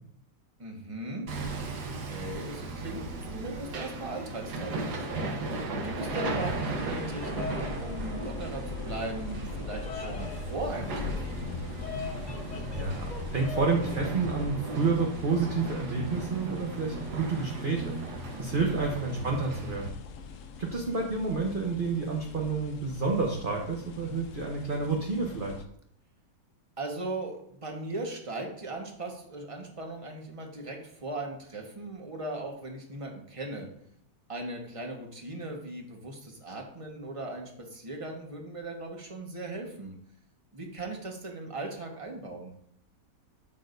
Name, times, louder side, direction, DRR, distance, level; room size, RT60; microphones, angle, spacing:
voice 1, 0.6-5.4 5.8-11.4 18.3-18.8 26.8-33.7 34.3-39.9 40.5-42.5, right 2 dB, 20° right, 1 dB, 1.3 m, -38 dB
Hammer, 1.3-19.9, right 2 dB, 70° right, 1.6 m, -36 dB
Bird vocalization bird call bird song, 5.8-13.8, left 4 dB, 25° left, 1.4 m, -43 dB
sound 1, 6.4-25.6, left 5 dB, 60° left, 0.9 m, -42 dB
voice 2, 12.7-17.9 18.4-19.9 20.6-25.6, right 4 dB, 35° right, -1 dB, 1.0 m, -29 dB
12.5 x 6.5 x 2.6 m, 0.69 s
omnidirectional pair, 1.8 m